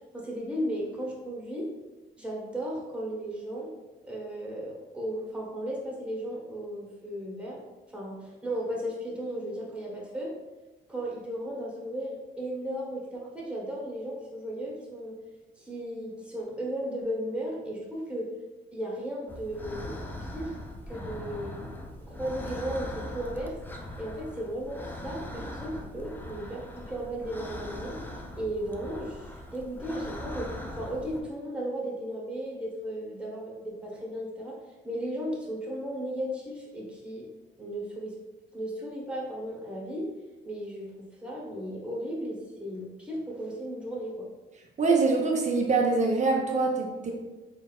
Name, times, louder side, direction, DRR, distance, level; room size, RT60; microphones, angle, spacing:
voice 1, 0.1-1.7 2.2-3.7 4.0-7.6 7.9-10.3 10.9-15.2 15.5-18.3 18.7-20.6 20.9-23.6 24.0-28.0 28.4-34.6 34.8-37.3 37.6-38.1 38.5-40.1 40.4-44.3, right 1 dB, 5° right, -4 dB, 1.3 m, -35 dB
sound 1, 19.3-31.2, left 1 dB, 10° left, 0.5 m, -40 dB
voice 2, 44.8-47.1, right 3 dB, 35° right, 0 dB, 0.8 m, -24 dB
4.1 x 3.4 x 2.4 m, 1.1 s
cardioid pair, 90°, 20 cm